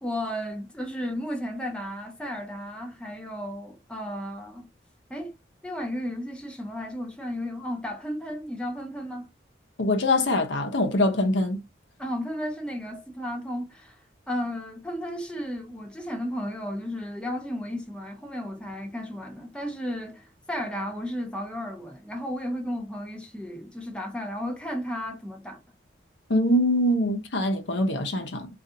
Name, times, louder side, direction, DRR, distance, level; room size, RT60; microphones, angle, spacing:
voice 1, 0.0-4.7 5.1-5.3 5.6-9.3 12.0-14.0 14.3-25.6, equal, 5° left, 0.6 m, -34 dB
voice 2, 9.8-11.6 26.3-28.5, left 1 dB, 80° left, 0.8 m, -23 dB
3.8 x 2.5 x 2.6 m
head